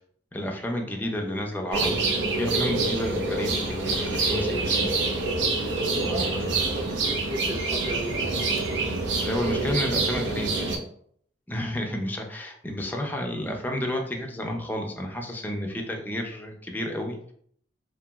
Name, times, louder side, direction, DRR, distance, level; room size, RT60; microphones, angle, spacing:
voice 1, 0.3-5.0 5.9-6.9 9.2-10.8 11.5-17.3, left 1 dB, 10° left, 2 dB, 0.3 m, -31 dB
sound 1, 1.7-10.8, right 3 dB, 85° right, 0.5 m, -26 dB
voice 2, 6.0-8.1, equal, 30° right, 1 dB, 0.6 m, -36 dB
2.9 x 2.4 x 2.2 m, 0.63 s
head